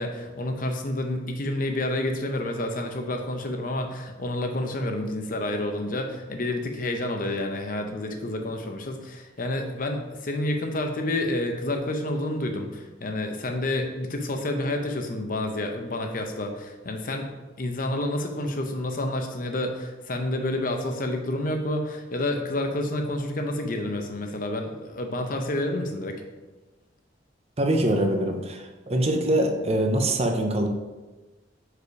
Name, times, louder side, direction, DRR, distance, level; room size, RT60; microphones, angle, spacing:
voice 1, 0.0-17.3 17.6-26.2, left 1 dB, 50° left, 4 dB, 0.7 m, -29 dB
voice 2, 27.6-30.7, right 1 dB, 35° right, 4 dB, 0.7 m, -24 dB
4.9 x 4.8 x 4.7 m, 1.2 s
head